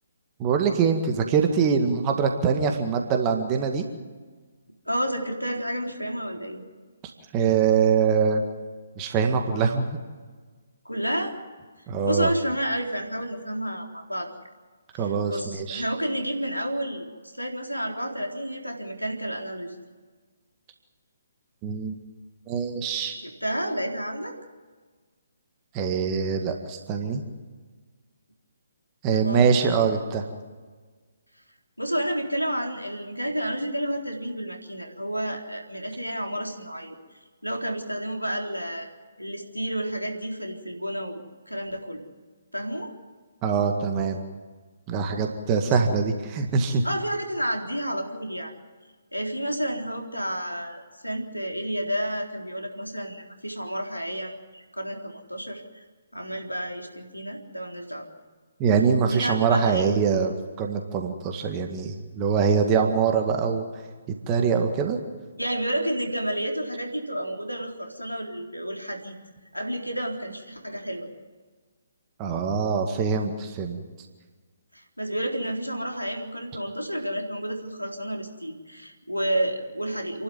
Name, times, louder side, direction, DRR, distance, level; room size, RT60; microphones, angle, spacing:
voice 1, 0.4-3.8 7.3-8.4 9.0-9.9 11.9-12.3 15.0-15.8 21.6-22.0 22.5-23.2 25.7-27.2 29.0-30.2 43.4-44.2 44.9-46.8 58.6-63.7 64.3-65.0 72.2-73.8, right 6 dB, 20° right, 4 dB, 1.9 m, -23 dB
voice 2, 4.9-6.6 10.8-11.4 12.0-14.3 14.9-17.0 17.4-19.8 23.2-24.3 29.1-29.6 31.8-37.0 37.4-38.9 39.2-42.0 42.5-42.9 45.6-45.7 46.8-48.5 49.1-55.8 56.1-58.1 59.1-59.8 65.4-69.2 69.5-71.2 74.7-80.2, right 1 dB, 90° left, 2 dB, 3.8 m, -30 dB
29.0 x 12.0 x 9.5 m, 1.4 s
figure-of-eight pair, 135°, 0 cm